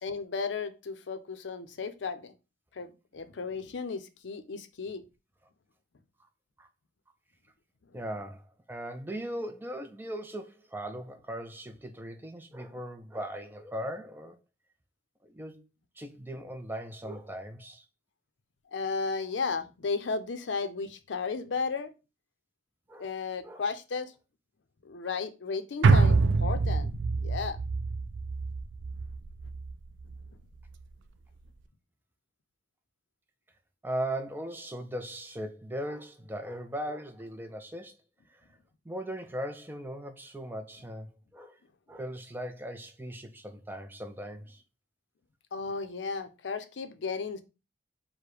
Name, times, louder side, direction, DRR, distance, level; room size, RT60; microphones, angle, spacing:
voice 1, 0.0-2.3 2.7-5.0 18.7-21.9 23.0-24.1 24.8-26.9 27.2-27.6 45.5-47.4, left 4 dB, 80° left, 0.5 m, -34 dB
voice 2, 7.9-14.4 15.2-15.6 16.0-17.8 22.9-23.1 23.4-23.6 33.8-38.0 38.3-38.4 38.8-41.6 41.9-44.6, right 1 dB, 10° right, 0.4 m, -38 dB
sound 1, 25.8-30.3 30.6-30.7, right 4 dB, 85° right, 0.4 m, -26 dB
4.8 x 2.1 x 4.6 m
head